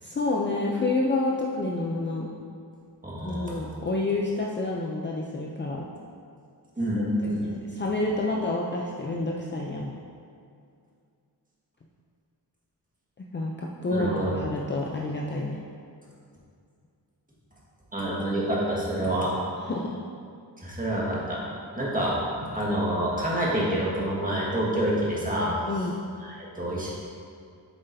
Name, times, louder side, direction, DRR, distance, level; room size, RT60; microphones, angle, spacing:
voice 1, 0.0-2.3 3.2-5.9 7.2-9.9 13.2-15.6 19.6-20.0 25.7-25.9, left 2 dB, 30° left, -2 dB, 0.5 m, -29 dB
voice 2, 3.0-3.6 6.8-7.5 13.9-14.3 17.9-19.3 20.6-21.4 21.7-25.5 26.2-26.9, right 1 dB, 20° right, -6 dB, 1.6 m, -27 dB
7.9 x 7.3 x 2.7 m, 2.3 s
wide cardioid pair, 150°, 41 cm